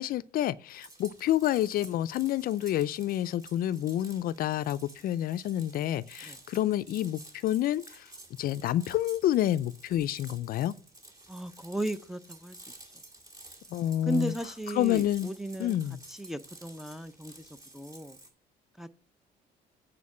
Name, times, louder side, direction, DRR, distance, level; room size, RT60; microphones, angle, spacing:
voice 1, 0.0-8.1 8.4-10.7 13.7-14.3 14.8-15.3 15.6-16.0, left 12 dB, 60° left, 0.4 m, -28 dB
sound 1, 0.8-18.3, right 2 dB, 20° right, 2.3 m, -52 dB
voice 2, 11.3-12.6 14.0-15.8 16.1-17.5 17.7-18.2 18.8-19.0, right 1 dB, ahead, 0.5 m, -36 dB
8.5 x 4.5 x 7.1 m
cardioid pair, 110°, 17 cm